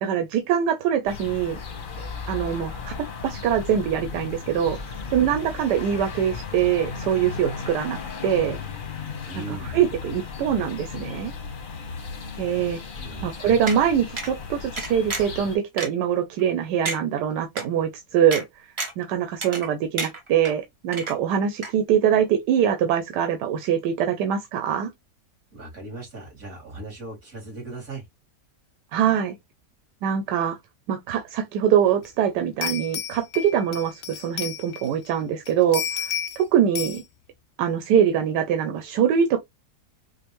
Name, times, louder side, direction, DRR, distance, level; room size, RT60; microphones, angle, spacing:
voice 1, 0.0-1.6 2.0-2.9 3.2-4.8 5.1-8.6 9.4-11.3 12.4-12.8 13.2-18.7 19.0-24.9 28.9-29.3 30.0-30.6 30.9-37.0 37.6-39.4, right 9 dB, 90° right, 1.2 m, -23 dB
sound 1, 1.1-15.6, left 5 dB, 45° left, 0.7 m, -35 dB
voice 2, 9.3-9.8 13.0-13.6 25.5-28.0, right 2 dB, 55° right, 2.7 m, -38 dB
sound 2, 13.7-13.8 14.2-14.3 14.8-15.4 15.8-15.9 16.4-16.5 16.8-17.0 17.6-17.7 18.3-18.4 18.8-19.0 19.4-19.7 20.0-20.5 20.9-21.4 21.6-21.7, right 3 dB, 30° right, 0.5 m, -30 dB
sound 3, 32.0-32.1 32.6-35.1 35.4-36.4 36.7-37.0, left 9 dB, 85° left, 0.5 m, -31 dB
5.1 x 2.1 x 2.9 m
omnidirectional pair, 1.8 m